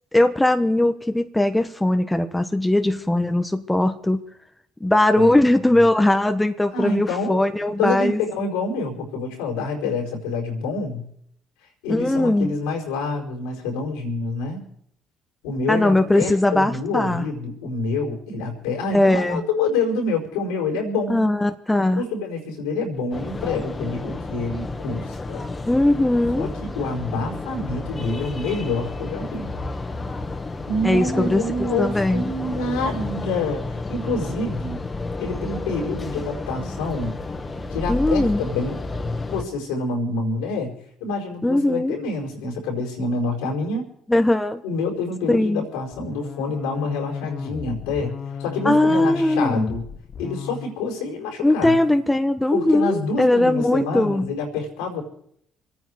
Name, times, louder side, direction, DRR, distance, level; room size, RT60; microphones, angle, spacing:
voice 1, 0.1-4.2 4.8-8.2 11.9-12.5 15.7-17.2 18.9-19.4 21.1-22.0 25.7-26.5 30.8-32.3 37.9-38.4 41.4-42.0 44.1-44.6 45.3-45.7 48.6-49.7 51.4-54.3, left 1 dB, 10° left, 7 dB, 1.2 m, -20 dB
voice 2, 6.7-11.1 11.8-14.6 15.4-21.3 21.8-25.4 26.4-29.5 30.7-34.8 35.2-37.2 37.7-38.8 39.3-40.7 41.0-43.9 44.6-48.1 48.4-49.9 50.2-51.8 52.5-55.0, left 3 dB, 90° left, -1 dB, 4.7 m, -27 dB
sound 1, 23.1-39.4, left 3 dB, 30° left, 1.8 m, -31 dB
sound 2, 45.9-50.8, left 7 dB, 55° left, 1.1 m, -35 dB
25.5 x 9.5 x 4.8 m, 0.69 s
supercardioid pair, 60°, 0 cm